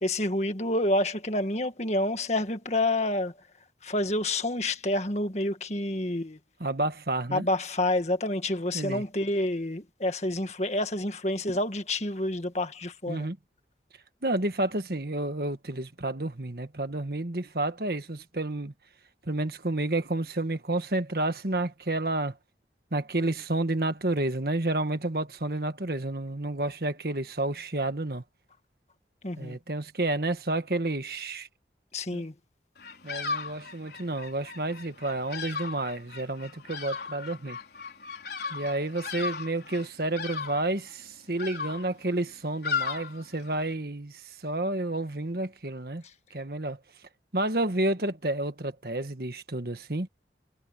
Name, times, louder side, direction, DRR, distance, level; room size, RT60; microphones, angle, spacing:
voice 1, 0.0-3.3 3.8-6.4 7.3-13.3 29.2-29.6 31.9-32.3, left 1 dB, 40° left, 1.9 m, -28 dB
voice 2, 6.6-7.5 8.7-9.0 13.1-13.4 14.2-18.7 19.3-22.3 22.9-28.2 29.4-31.5 32.1-32.2 33.0-37.6 38.5-46.0 46.3-46.8 47.3-50.1, right 2 dB, 55° right, 1.6 m, -30 dB
Bird vocalization bird call bird song, 32.8-43.7, left 5 dB, 65° left, 4.0 m, -37 dB
head